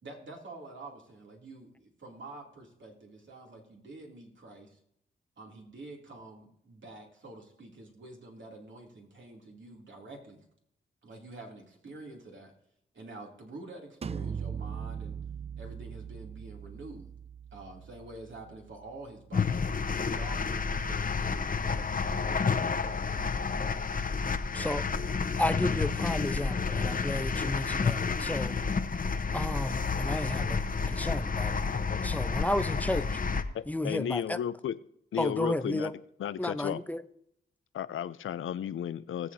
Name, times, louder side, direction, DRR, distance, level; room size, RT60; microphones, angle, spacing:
voice 1, 0.0-4.8 5.4-10.4 11.0-12.5 12.9-15.2 15.6-17.1 17.5-19.6 20.0-24.0 24.4-24.9, right 2 dB, 65° right, 2.8 m, -47 dB
sound 1, 14.0-19.7, right 7 dB, 30° right, 0.4 m, -41 dB
sound 2, 19.3-33.4, left 5 dB, 40° left, 0.9 m, -30 dB
voice 2, 24.5-24.8 25.4-28.6 29.3-30.6 30.9-31.6 32.0-33.2 33.7-34.4 35.2-35.9 36.4-37.0, left 1 dB, 5° left, 0.7 m, -32 dB
voice 3, 33.5-34.8 35.1-35.9 36.2-36.8 37.7-39.3, left 9 dB, 70° left, 0.5 m, -34 dB
19.5 x 7.6 x 2.7 m
supercardioid pair, 45°, 21 cm